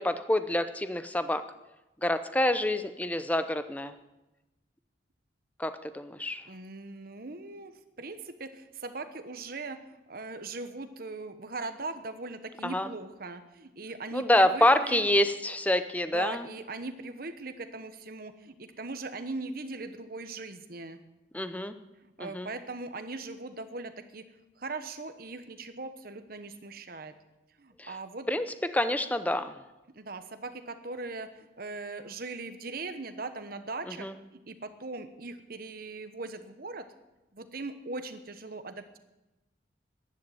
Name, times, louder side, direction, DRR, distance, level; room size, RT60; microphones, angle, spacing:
voice 1, 0.0-1.4 2.0-3.9 5.6-6.4 12.6-12.9 14.1-16.5 21.3-21.8 22.2-22.5 27.8-27.9 28.3-28.5 28.7-29.5 33.9-34.1, left 1 dB, 10° left, 10 dB, 0.7 m, -27 dB
voice 2, 6.5-7.7 8.0-15.1 16.1-21.0 22.2-24.2 24.6-27.1 27.6-28.3 29.9-34.1 34.5-36.8 37.3-39.0, right 3 dB, 50° right, 9 dB, 1.1 m, -40 dB
11.0 x 11.0 x 8.9 m, 1.0 s
head